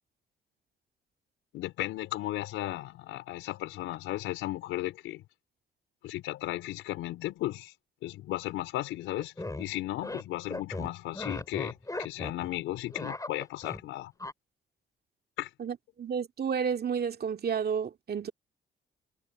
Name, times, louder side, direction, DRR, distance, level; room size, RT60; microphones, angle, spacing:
voice 1, 1.5-5.2 6.0-7.7 8.0-14.1 15.4-15.5, left 16 dB, 80° left, 4.2 m, -35 dB
sound 1, 9.2-9.7 10.0-10.2 10.5-12.5 12.7-13.8 14.2-14.3, left 2 dB, 15° left, 6.9 m, -37 dB
voice 2, 15.6-18.3, right 7 dB, 50° right, 2.2 m, -31 dB
supercardioid pair, 55°, 20 cm